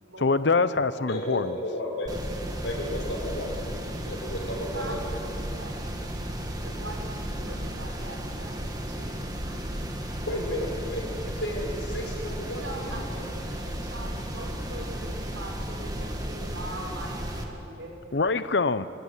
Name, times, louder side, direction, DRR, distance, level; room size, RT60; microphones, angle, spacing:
voice 1, 0.2-1.5 18.1-18.9, left 4 dB, 65° left, 14 dB, 0.7 m, -24 dB
voice 2, 1.1-2.1 2.6-3.5 3.8-5.0 10.3-13.0, left 1 dB, 90° left, -1 dB, 6.2 m, -33 dB
sound 1, 2.1-17.4, equal, 20° right, 2.0 m, -34 dB
voice 3, 4.7-5.8 6.6-8.6 8.9-9.9 12.5-18.2, right 1 dB, 75° right, 0 dB, 6.7 m, -42 dB
29.0 x 16.0 x 10.0 m, 2.9 s
head